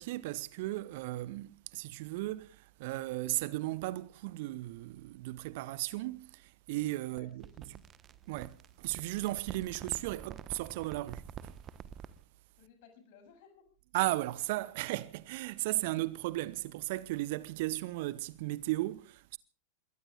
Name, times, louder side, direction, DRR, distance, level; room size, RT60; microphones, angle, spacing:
voice 1, 0.0-7.8 8.3-11.5 13.9-19.4, right 18 dB, 50° right, 1.0 m, -36 dB
voice 2, 7.1-7.8 12.6-13.6, left 6 dB, 50° left, 7.6 m, -59 dB
sound 1, 7.2-12.2, right 8 dB, 30° right, 1.2 m, -48 dB
27.5 x 22.0 x 2.4 m
figure-of-eight pair, 90°, 0 cm